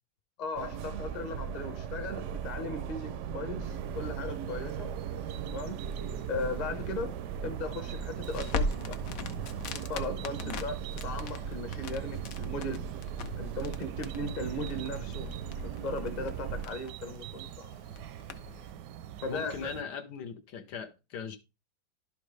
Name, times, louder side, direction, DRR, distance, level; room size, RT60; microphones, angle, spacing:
voice 1, 0.4-4.9 5.5-5.8 6.3-7.1 7.4-9.0 9.7-10.8 11.0-12.8 13.4-15.3 15.8-17.8 19.2-19.7, left 2 dB, 30° left, 0.9 m, -37 dB
sound 1, 0.5-16.7, right 7 dB, 65° right, 0.7 m, -38 dB
sound 2, 3.6-19.8, right 11 dB, 85° right, 1.2 m, -45 dB
Crackle, 8.2-18.7, left 4 dB, 65° left, 1.1 m, -40 dB
voice 2, 19.2-21.4, left 6 dB, 80° left, 1.6 m, -40 dB
11.5 x 5.2 x 3.2 m
omnidirectional pair, 1.8 m